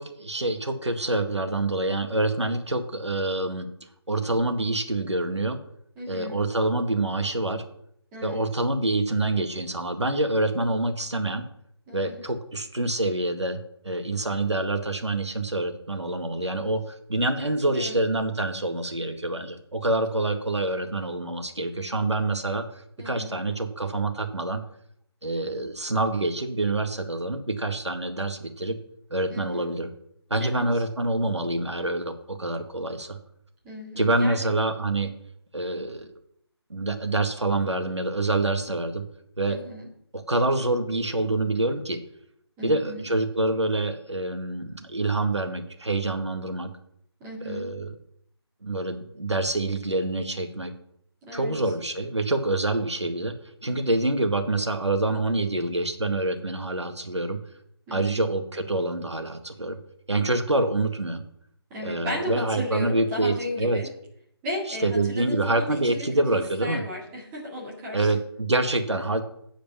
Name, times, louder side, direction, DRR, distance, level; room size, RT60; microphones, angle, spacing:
voice 1, 0.0-3.7 4.1-5.6 6.1-7.6 8.2-11.5 11.9-13.6 13.8-22.7 23.0-24.6 25.2-28.8 29.1-29.9 30.3-33.2 34.0-35.1 35.5-36.1 36.7-39.0 39.4-39.6 40.1-42.0 42.6-46.7 47.5-47.9 48.6-50.7 51.3-53.3 53.6-57.4 57.9-59.8 60.1-61.2 61.8-63.8 64.8-66.8 67.9-69.2, right 2 dB, 85° right, 5 dB, 1.7 m, -26 dB
voice 2, 6.0-6.4 8.1-8.4 11.9-12.2 17.4-18.0 23.0-23.3 29.3-29.7 30.4-30.7 33.6-34.5 39.5-39.9 42.6-43.0 47.2-47.6 51.2-51.6 57.9-58.2 61.7-63.9 64.4-68.1, left 1 dB, 10° right, -4 dB, 2.1 m, -35 dB
9.1 x 5.0 x 6.9 m, 0.71 s
figure-of-eight pair, 160°, 14 cm